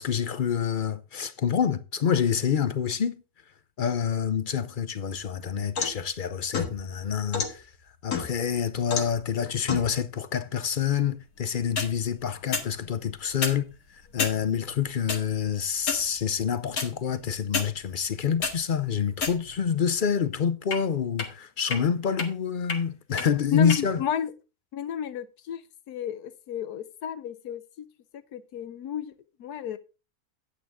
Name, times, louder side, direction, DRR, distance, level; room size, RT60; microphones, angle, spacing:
voice 1, 0.0-3.1 3.8-7.7 8.0-13.7 13.9-24.0, left 7 dB, 55° left, 0.6 m, -27 dB
sound 1, 5.1-6.0 6.5-7.5 8.1-8.5 8.9-9.2 9.7-9.9 11.6-11.9 12.5-12.7 13.3-13.6 14.2-14.4 15.1-15.2 15.8-16.1 16.8-16.9 17.5-17.7 18.2-18.6 19.2-19.7 20.7-20.8 21.2-21.3 21.7-21.8 22.2-22.3 22.7-22.8 23.2-23.3 23.7-23.8, left 5 dB, 70° left, 2.0 m, -29 dB
voice 2, 23.5-24.3 24.7-25.6 25.9-27.6 28.1-29.1 29.4-29.8, left 9 dB, 90° left, 1.3 m, -32 dB
9.7 x 8.6 x 3.6 m
omnidirectional pair, 1.6 m